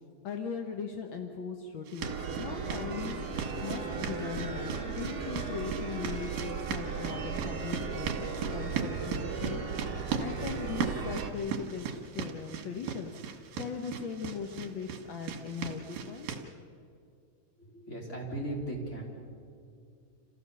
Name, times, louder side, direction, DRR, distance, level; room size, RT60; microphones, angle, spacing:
voice 1, 0.2-9.7 10.2-16.4, left 6 dB, 60° left, 4 dB, 1.3 m, -39 dB
sound 1, 1.9-16.4, right 6 dB, 80° right, 3.2 m, -39 dB
sound 2, 2.0-11.3, right 5 dB, 45° right, 3.2 m, -36 dB
voice 2, 17.7-19.0, right 1 dB, 20° left, -2 dB, 3.9 m, -37 dB
28.0 x 16.0 x 6.9 m, 2.3 s
omnidirectional pair, 3.8 m